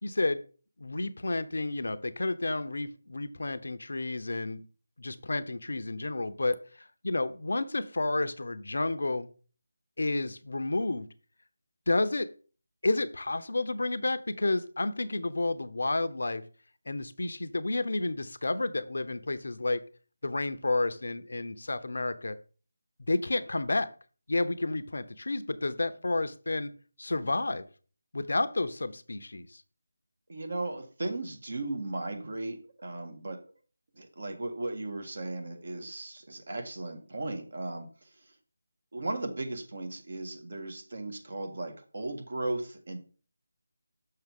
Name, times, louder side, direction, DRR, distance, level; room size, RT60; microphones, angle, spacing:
voice 1, 0.0-0.4 0.8-4.6 5.0-6.5 7.0-9.3 10.0-11.1 11.9-12.3 12.8-16.4 16.9-19.8 20.2-22.4 23.1-23.9 24.3-26.7 27.0-27.6 28.1-29.5, left 2 dB, 65° left, 11 dB, 0.7 m, -30 dB
voice 2, 30.3-33.4 34.0-38.3 38.9-43.0, right 2 dB, 60° right, 5 dB, 1.6 m, -36 dB
6.5 x 5.8 x 3.6 m, 0.38 s
figure-of-eight pair, 160°, 0 cm